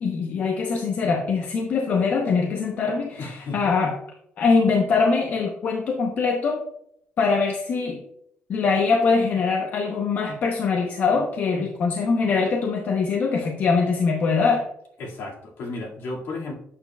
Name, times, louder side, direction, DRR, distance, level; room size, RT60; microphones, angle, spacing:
voice 1, 0.0-4.0 4.4-6.6 7.2-8.0 8.5-14.7, left 4 dB, 50° left, 2 dB, 0.8 m, -23 dB
voice 2, 3.2-3.7 15.0-16.6, left 2 dB, 65° left, -2 dB, 2.0 m, -33 dB
8.4 x 6.8 x 2.3 m, 0.72 s
cardioid pair, 165°, 4 cm